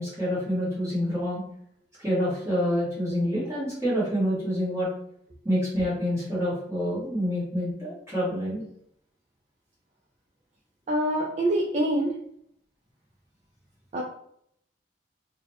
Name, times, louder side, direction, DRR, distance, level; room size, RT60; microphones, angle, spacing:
voice 1, 0.0-1.4 2.0-4.9 5.4-8.6, equal, 15° right, -9 dB, 1.5 m, -27 dB
voice 2, 10.9-12.1 13.9-14.0, right 1 dB, 40° right, -3 dB, 0.5 m, -25 dB
3.8 x 2.2 x 3.0 m, 0.70 s
head